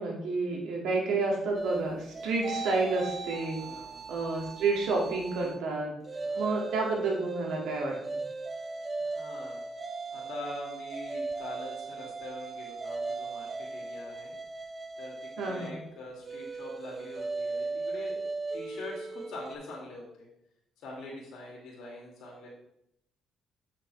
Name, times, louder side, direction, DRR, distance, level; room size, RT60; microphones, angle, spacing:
voice 1, 0.0-3.6 4.1-5.9 6.3-7.9 15.4-15.8, right 3 dB, 85° right, -1 dB, 2.1 m, -30 dB
sound 1, 1.5-5.6 6.0-19.6, right 3 dB, 35° right, 0.7 m, -38 dB
voice 2, 3.6-4.0 6.2-6.6 9.0-9.6 10.1-14.3 15.0-18.2 18.5-20.3 20.8-22.5, left 2 dB, 80° left, -3 dB, 2.2 m, -44 dB
7.8 x 5.9 x 3.2 m, 0.76 s
cardioid pair, 90°, 0 cm